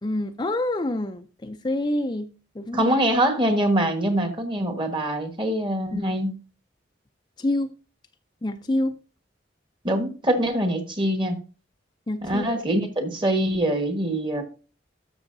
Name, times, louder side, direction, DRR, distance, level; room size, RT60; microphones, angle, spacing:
voice 1, 0.0-3.0 5.9-6.2 7.4-7.7 8.4-9.0 12.1-12.5, left 1 dB, 25° left, 0.4 m, -27 dB
voice 2, 2.7-6.3 9.8-11.4 12.2-14.4, right 1 dB, 25° right, 1.4 m, -24 dB
13.0 x 6.3 x 2.6 m
head